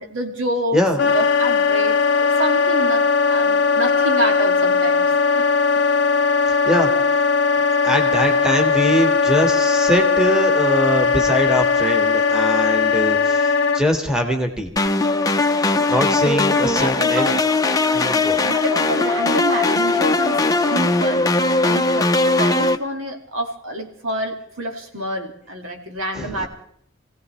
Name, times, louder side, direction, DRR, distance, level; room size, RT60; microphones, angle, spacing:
voice 1, 0.0-0.8 1.1-6.0 15.6-16.1 16.5-17.5 17.8-18.0 18.4-21.3 21.6-22.1 22.4-26.5, right 1 dB, 75° right, 4 dB, 2.0 m, -28 dB
Wind instrument woodwind instrument, 1.0-13.8, left 5 dB, 55° left, 0.7 m, -18 dB
voice 2, 6.5-6.9 7.8-14.7 15.9-17.4 17.9-18.4 26.1-26.5, left 1 dB, 5° right, 2 dB, 1.6 m, -22 dB
sound 1, 14.8-22.8, left 3 dB, 15° left, 0.7 m, -19 dB
25.5 x 17.0 x 3.2 m, 0.65 s
head